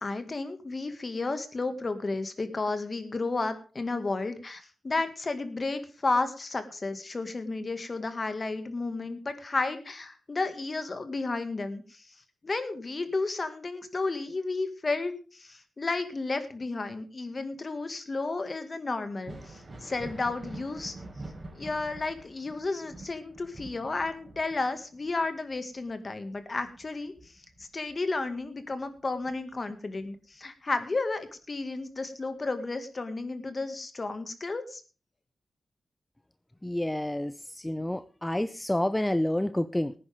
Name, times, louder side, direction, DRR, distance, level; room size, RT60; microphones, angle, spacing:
voice 1, 0.0-12.0 12.4-20.9 21.5-27.1 27.7-34.8, left 3 dB, 40° left, 9 dB, 2.0 m, -32 dB
Thunder, 19.1-28.4 28.8-30.0 31.6-31.7 32.5-32.6, right 2 dB, 35° right, 4.4 m, -46 dB
voice 2, 36.6-39.9, left 1 dB, 10° left, 12 dB, 0.6 m, -29 dB
18.5 x 10.0 x 3.6 m, 0.36 s
cardioid pair, 65°, 0 cm